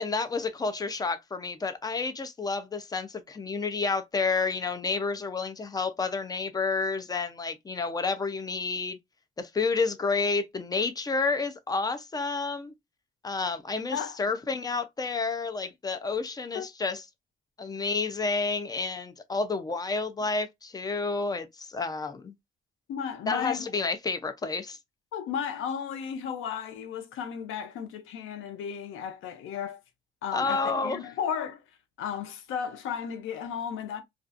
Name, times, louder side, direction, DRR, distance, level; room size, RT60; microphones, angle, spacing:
voice 1, 0.0-9.0 9.4-12.7 13.2-17.0 17.6-22.3 23.3-24.8 30.3-31.0, left 4 dB, 20° left, 0.5 m, -30 dB
voice 2, 22.9-23.6 25.1-29.8 30.2-31.6 32.0-34.0, left 7 dB, 85° left, 0.6 m, -34 dB
2.4 x 2.4 x 2.4 m
cardioid pair, 90°, 20 cm